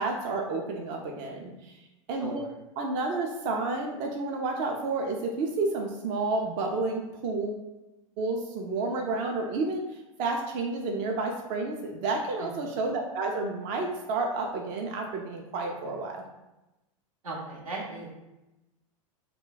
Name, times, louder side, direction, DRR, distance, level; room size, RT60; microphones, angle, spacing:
voice 1, 0.0-1.8 2.1-2.4 2.8-7.7 8.2-16.2, right 3 dB, 45° right, 1 dB, 0.5 m, -30 dB
voice 2, 17.2-18.1, right 2 dB, 85° right, -2 dB, 0.9 m, -37 dB
2.2 x 2.2 x 3.9 m, 0.99 s
hypercardioid pair, 95°, 17 cm